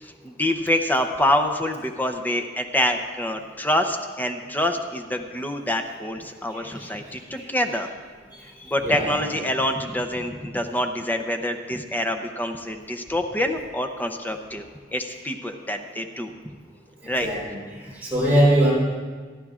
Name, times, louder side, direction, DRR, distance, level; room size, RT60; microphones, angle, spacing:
voice 1, 0.0-7.9 8.6-14.6 14.9-16.3 17.1-17.3, left 1 dB, 10° left, 5 dB, 0.6 m, -26 dB
voice 2, 8.8-9.2 17.2-17.6 18.0-18.7, right 1 dB, 10° right, -8 dB, 3.9 m, -20 dB
26.0 x 10.5 x 2.4 m, 1.5 s
head